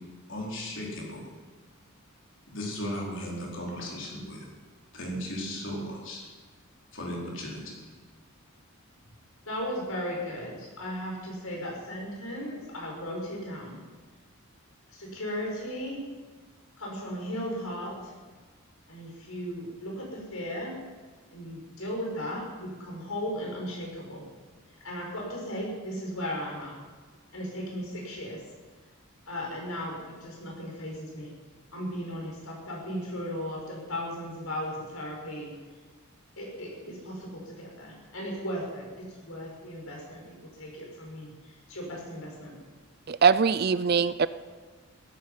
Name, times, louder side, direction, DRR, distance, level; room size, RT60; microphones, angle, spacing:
voice 1, 0.3-1.2 2.5-4.5 4.9-6.3 6.9-7.6, equal, 55° left, -3 dB, 4.7 m, -36 dB
voice 2, 9.5-13.8 14.9-16.0 16.8-18.1 18.9-20.7 21.3-24.2 24.8-26.8 27.3-28.4 29.3-31.3 31.7-35.5 36.4-42.5, equal, 80° left, -1 dB, 5.9 m, -36 dB
voice 3, 43.1-44.3, right 5 dB, 45° right, 16 dB, 0.4 m, -22 dB
16.5 x 15.0 x 5.8 m, 1.4 s
head